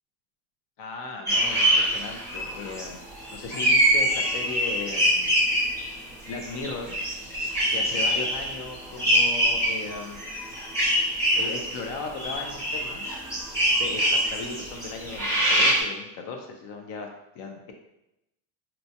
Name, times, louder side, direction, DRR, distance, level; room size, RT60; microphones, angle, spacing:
voice 1, 0.8-5.3 6.3-7.0 7.7-10.2 11.4-13.1 13.8-17.1 17.3-17.7, left 4 dB, 55° left, 3 dB, 0.6 m, -37 dB
sound 1, 1.3-6.0 6.2-15.8, equal, 5° left, 0.7 m, -24 dB
4.2 x 2.3 x 2.8 m, 0.86 s
cardioid pair, 165°, 48 cm